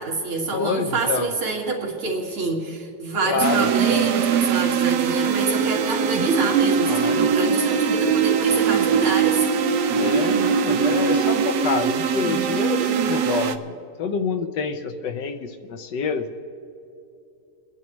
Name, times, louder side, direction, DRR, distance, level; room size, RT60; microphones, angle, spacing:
voice 1, 0.0-9.5, right 3 dB, 90° right, -2 dB, 2.8 m, -26 dB
voice 2, 0.5-1.3 3.2-4.1 6.8-7.3 9.9-16.4, left 5 dB, 70° left, 7 dB, 1.2 m, -27 dB
sound 1, 3.4-13.6, right 7 dB, 70° right, 1.0 m, -21 dB
29.0 x 10.5 x 3.1 m, 2.7 s
omnidirectional pair, 2.2 m